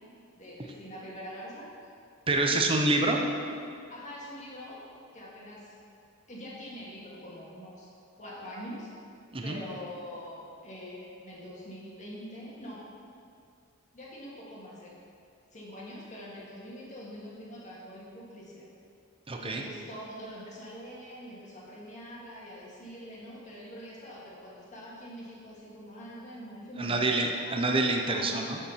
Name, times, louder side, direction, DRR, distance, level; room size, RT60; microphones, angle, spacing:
voice 1, 0.4-1.7 2.4-2.7 3.9-4.8 5.1-5.7 6.3-7.9 8.2-8.9 9.4-12.8 13.9-14.9 15.5-18.7 19.4-27.6 28.0-28.2, equal, 35° left, -6 dB, 2.1 m, -44 dB
voice 2, 2.3-3.3 9.3-9.6 19.3-19.6 26.8-28.6, right 2 dB, 25° right, 2 dB, 0.7 m, -27 dB
7.1 x 7.0 x 5.7 m, 2.4 s
head